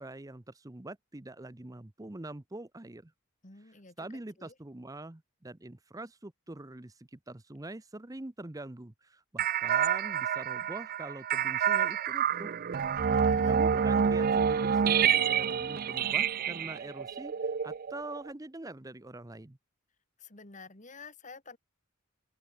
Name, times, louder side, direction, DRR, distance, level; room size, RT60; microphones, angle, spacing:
voice 1, 0.0-3.1 4.0-12.6 13.5-19.6, right 2 dB, 15° right, 0.7 m, -44 dB
voice 2, 3.4-4.5 12.8-13.6 20.2-21.6, left 4 dB, 35° left, 2.6 m, -50 dB
sound 1, 9.4-18.3, right 7 dB, 45° right, 0.4 m, -28 dB
open air
head